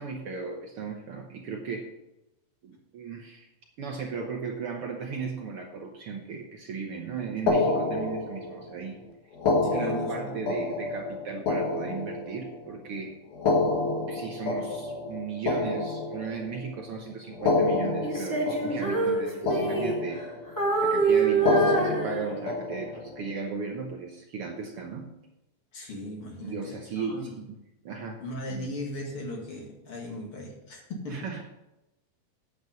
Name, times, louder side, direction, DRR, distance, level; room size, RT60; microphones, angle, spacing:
voice 1, 0.0-1.9 2.6-3.5 3.8-9.0 9.6-13.2 14.1-20.2 20.8-25.2 26.4-27.5 27.8-28.2 28.5-28.7 31.1-31.4, right 5 dB, 75° right, 1 dB, 1.3 m, -36 dB
sound 1, 7.5-8.7 9.3-12.7 13.3-16.6 17.3-19.2 19.5-20.5 21.3-23.2, left 3 dB, 65° left, 3.0 m, -28 dB
voice 2, 9.6-10.4 25.7-27.2 28.2-31.3, left 1 dB, 45° left, 0 dB, 2.6 m, -38 dB
Female singing, 18.0-20.2 20.6-22.6, right 4 dB, 10° left, 1.1 m, -26 dB
9.1 x 8.5 x 5.2 m, 0.94 s
omnidirectional pair, 3.9 m